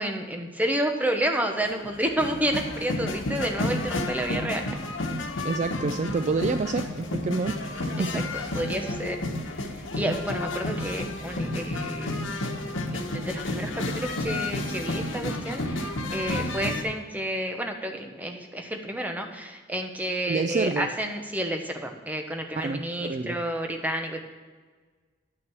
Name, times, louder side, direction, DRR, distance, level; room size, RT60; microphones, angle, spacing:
voice 1, 0.0-4.6 5.1-5.2 8.0-8.1 8.5-12.4 12.9-24.2, right 1 dB, 10° right, 4 dB, 0.9 m, -30 dB
sound 1, 1.7-16.8, left 2 dB, 90° left, 1.1 m, -31 dB
voice 2, 5.4-8.6 20.3-20.9 22.5-23.4, right 3 dB, 40° right, 9 dB, 0.3 m, -29 dB
10.5 x 5.9 x 6.1 m, 1.5 s
head